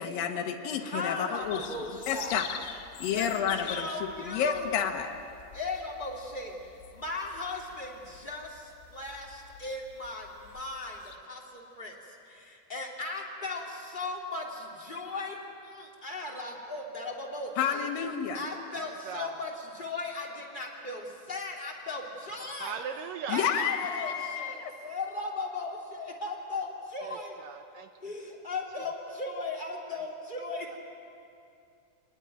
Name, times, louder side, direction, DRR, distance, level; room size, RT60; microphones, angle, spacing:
voice 1, 0.0-2.5 3.0-5.1 17.6-18.4 23.3-24.7, left 7 dB, 70° left, 4 dB, 3.0 m, -30 dB
voice 2, 0.8-2.4 3.1-4.7 5.5-6.6 6.9-15.4 15.6-17.8 18.3-22.8 23.3-27.4 28.0-30.8, left 3 dB, 15° left, -2 dB, 2.4 m, -37 dB
sound 1, 1.4-11.2, left 9 dB, 85° left, 3.3 m, -45 dB
voice 3, 18.9-19.4 22.6-23.5 27.0-27.9 29.9-30.0 30.7-30.8, right 7 dB, 75° right, 7 dB, 2.2 m, -39 dB
25.0 x 20.0 x 9.1 m, 2.6 s
omnidirectional pair, 4.5 m